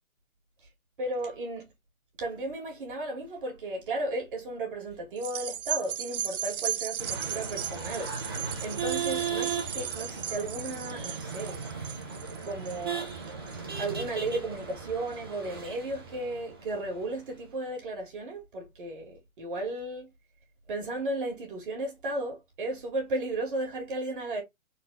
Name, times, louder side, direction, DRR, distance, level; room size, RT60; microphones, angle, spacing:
voice 1, 1.0-1.7 2.2-8.1 8.6-11.6 12.4-13.1 13.8-20.1 20.7-24.4, right 2 dB, 40° right, 1.9 m, -34 dB
sound 1, 5.2-13.8 14.3-14.4, right 10 dB, 85° right, 0.7 m, -36 dB
sound 2, 7.0-17.4, right 6 dB, 15° right, 0.7 m, -37 dB
4.1 x 3.1 x 4.0 m
hypercardioid pair, 165°, 42 cm